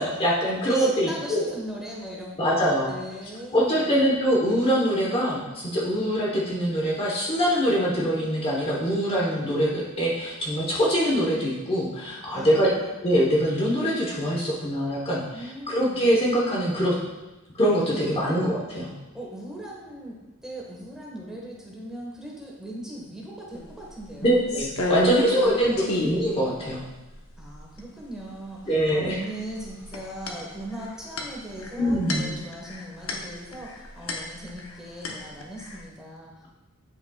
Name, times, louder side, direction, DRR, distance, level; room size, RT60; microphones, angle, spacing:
voice 1, 0.0-1.4 2.4-2.9 3.5-12.7 13.0-16.9 17.5-18.9 24.2-26.9 28.7-29.2 31.8-32.3, equal, 25° left, -4 dB, 1.0 m, -23 dB
voice 2, 0.6-4.2 5.9-6.2 12.3-12.9 15.3-16.1 17.9-18.4 19.1-24.3 25.3-26.0 27.4-36.5, right 1 dB, 5° right, -4 dB, 1.3 m, -39 dB
sound 1, 23.6-23.7 24.0-25.5 25.8-26.2 26.7-26.8 27.1-27.8 28.9-29.2 29.5-34.7 35.0-35.8, left 1 dB, 75° left, 0.9 m, -31 dB
9.7 x 5.3 x 2.3 m, 1.1 s
head